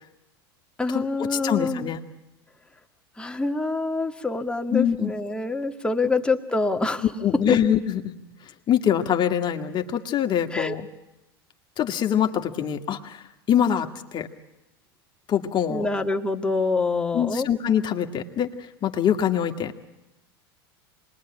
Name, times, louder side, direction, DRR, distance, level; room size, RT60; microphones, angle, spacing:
voice 1, 0.8-1.9 3.2-7.0 7.5-7.6 10.5-10.8 15.7-17.5, left 3 dB, 5° left, 4 dB, 1.9 m, -26 dB
voice 2, 1.3-2.0 4.7-5.1 7.2-8.2 8.7-10.9 11.8-14.3 15.3-15.9 17.1-18.5 18.8-19.7, left 9 dB, 35° left, 5 dB, 2.0 m, -24 dB
26.5 x 21.0 x 10.0 m, 0.92 s
hypercardioid pair, 85°, 13 cm